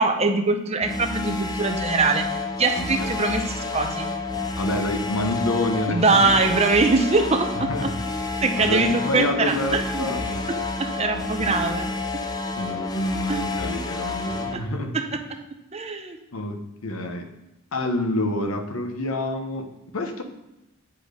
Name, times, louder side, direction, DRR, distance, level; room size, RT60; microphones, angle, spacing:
voice 1, 0.0-2.2 2.6-4.1 5.9-7.7 8.4-10.1 10.9-11.9 13.3-13.4 14.5-14.6 15.7-16.2, right 3 dB, 30° right, 5 dB, 0.7 m, -22 dB
sound 1, 0.8-14.5, left 3 dB, 20° left, 0.5 m, -30 dB
voice 2, 2.8-3.1 4.6-6.4 7.5-7.9 8.6-10.6 11.4-11.8 12.6-14.9 16.3-17.3 17.7-19.7 19.9-20.2, left 1 dB, 85° left, 4 dB, 1.1 m, -28 dB
8.4 x 4.4 x 5.1 m, 0.95 s
head